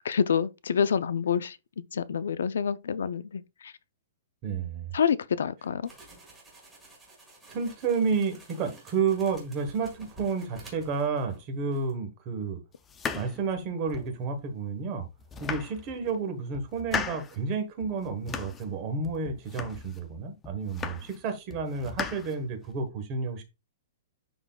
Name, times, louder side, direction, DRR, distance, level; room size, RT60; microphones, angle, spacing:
voice 1, 0.0-1.6 1.9-3.7 4.9-5.9, left 7 dB, 85° left, 0.5 m, -27 dB
voice 2, 4.4-4.9 7.5-12.6 13.1-15.1 15.4-23.4, right 5 dB, 25° right, 1.2 m, -31 dB
sound 1, 5.8-11.5 11.7-11.9, right 2 dB, 5° right, 1.7 m, -51 dB
sound 2, 12.8-14.2 14.7-14.8 15.2-16.1 16.5-17.4 17.8-18.7 19.0-20.0 20.4-21.2 21.5-22.8, left 6 dB, 10° left, 0.4 m, -37 dB
11.0 x 3.9 x 2.3 m
hypercardioid pair, 180°, 0 cm